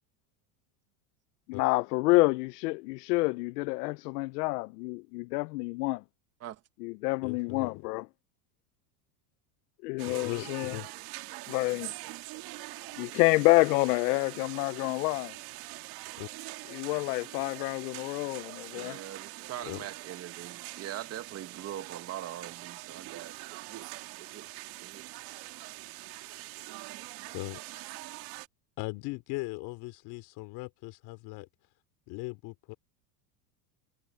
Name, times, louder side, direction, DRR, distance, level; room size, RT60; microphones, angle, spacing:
voice 1, 1.5-6.0 6.8-8.0 9.8-10.8 11.5-11.9 13.0-15.3 16.7-19.0, left 23 dB, 75° left, 0.6 m, -28 dB
voice 2, 7.2-7.9 10.0-10.9 16.2-16.3 19.6-19.9 27.3-27.8 28.8-31.5 32.1-32.7, left 22 dB, 55° left, 3.0 m, -39 dB
sound 1, 10.0-28.5, right 20 dB, 50° right, 1.8 m, -44 dB
voice 3, 18.7-23.9 24.2-24.5 24.8-25.3, right 11 dB, 30° right, 1.5 m, -42 dB
supercardioid pair, 145°, 47 cm